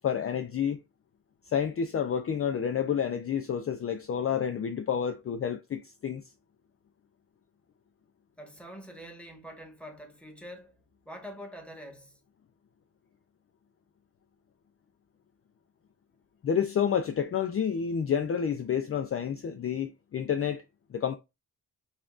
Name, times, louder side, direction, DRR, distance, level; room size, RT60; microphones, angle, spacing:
voice 1, 0.0-0.8 1.5-6.2 16.4-20.6 20.9-21.2, left 8 dB, 40° left, 0.4 m, -29 dB
voice 2, 8.4-10.8 11.0-12.2, equal, 5° left, 1.3 m, -45 dB
5.6 x 2.4 x 2.4 m
cardioid pair, 80°, 35 cm